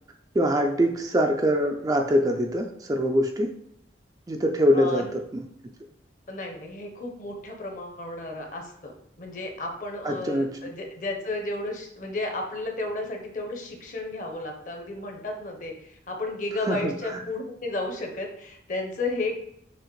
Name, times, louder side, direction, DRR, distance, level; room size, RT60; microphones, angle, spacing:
voice 1, 0.4-3.5 4.3-5.4 10.0-10.5 16.7-17.2, equal, 20° right, 3 dB, 0.3 m, -24 dB
voice 2, 4.7-5.2 6.3-8.9 9.2-19.3, left 2 dB, 45° left, 2 dB, 0.8 m, -33 dB
6.2 x 2.5 x 3.0 m, 0.75 s
head